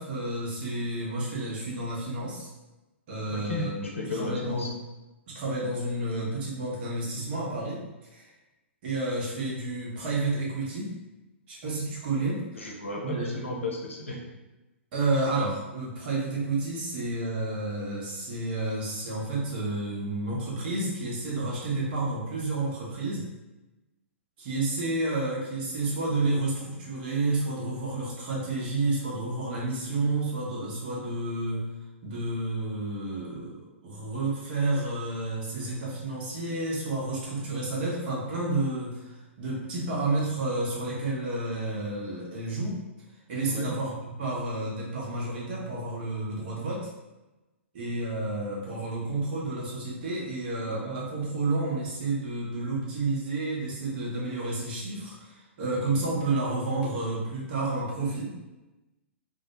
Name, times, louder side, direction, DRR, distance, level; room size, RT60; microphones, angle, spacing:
voice 1, 0.0-2.5 3.1-3.9 4.2-4.7 5.3-7.8 8.1-8.3 8.8-10.9 11.5-12.8 13.0-13.4 14.9-23.3 24.4-31.7 32.0-42.8 43.3-46.9 47.7-58.3, right 2 dB, 50° right, -4 dB, 0.9 m, -30 dB
voice 2, 3.3-4.7 12.5-14.2 43.5-43.7, left 2 dB, 80° left, 0 dB, 0.6 m, -34 dB
2.1 x 2.0 x 2.9 m, 1.1 s
figure-of-eight pair, 110°, 7 cm